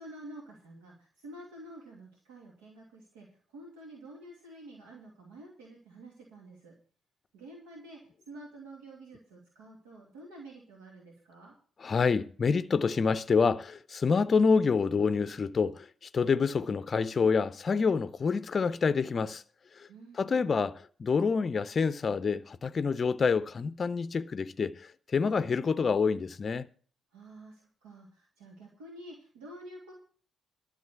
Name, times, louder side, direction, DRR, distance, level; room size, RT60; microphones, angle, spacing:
voice 1, 0.0-3.3 3.5-6.8 7.3-8.0 8.3-11.5 19.9-20.6 27.1-29.9, right 1 dB, 80° right, 2.4 m, -49 dB
voice 2, 11.8-19.4 19.7-19.9 20.1-26.7, left 5 dB, 45° left, 0.5 m, -27 dB
12.5 x 6.4 x 8.1 m
hypercardioid pair, 40°, 0 cm